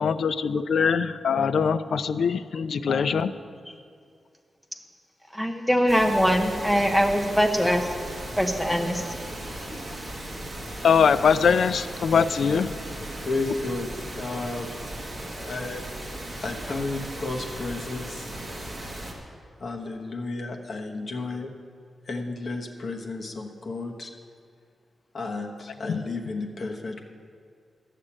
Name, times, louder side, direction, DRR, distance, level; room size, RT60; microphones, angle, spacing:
voice 1, 0.0-3.3 10.8-12.7 25.9-26.0, left 6 dB, 70° left, 12 dB, 0.4 m, -22 dB
voice 2, 5.3-7.9 8.4-9.1, equal, 5° left, 3 dB, 0.9 m, -22 dB
sound 1, 5.9-19.1, right 1 dB, 20° right, 2.0 m, -37 dB
voice 3, 13.2-13.9 14.2-14.7 15.4-15.8 16.4-18.3 19.6-21.5 22.1-24.1 25.1-27.1, left 3 dB, 40° left, 2 dB, 1.2 m, -32 dB
13.5 x 6.6 x 8.7 m, 2.2 s
wide cardioid pair, 145°, 0 cm